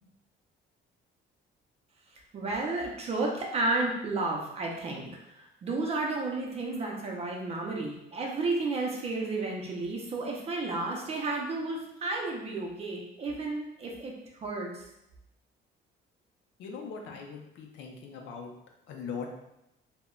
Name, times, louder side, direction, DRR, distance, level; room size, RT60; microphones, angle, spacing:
voice 1, 2.3-14.1 14.4-14.9, right 3 dB, 30° right, -1 dB, 0.4 m, -32 dB
voice 2, 16.6-18.5 18.9-19.4, left 5 dB, 65° left, 2 dB, 0.5 m, -40 dB
2.1 x 2.1 x 3.6 m, 0.84 s
cardioid pair, 170°, 20 cm